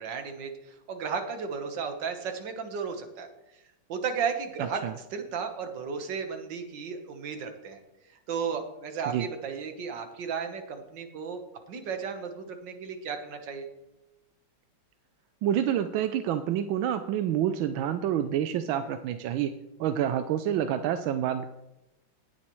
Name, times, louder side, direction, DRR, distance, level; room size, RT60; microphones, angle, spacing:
voice 1, 0.0-3.3 3.9-7.8 8.3-11.4 11.7-13.7, right 6 dB, 65° right, 6 dB, 1.9 m, -34 dB
voice 2, 15.4-19.5 19.8-21.4, right 10 dB, 85° right, 9 dB, 1.4 m, -28 dB
18.5 x 7.3 x 3.1 m, 0.94 s
omnidirectional pair, 2.1 m